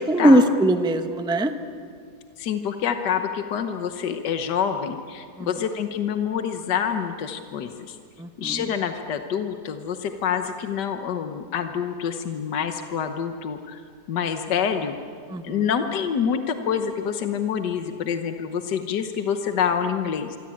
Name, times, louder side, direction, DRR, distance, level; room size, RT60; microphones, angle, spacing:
voice 1, 0.0-1.6 5.4-5.5 8.2-8.7 15.3-15.7, right 1 dB, 5° right, 8 dB, 0.8 m, -20 dB
voice 2, 2.4-8.0 8.4-13.8 14.1-15.0 15.4-20.4, left 7 dB, 80° left, 7 dB, 1.7 m, -27 dB
25.5 x 25.0 x 8.7 m, 2.3 s
omnidirectional pair, 1.8 m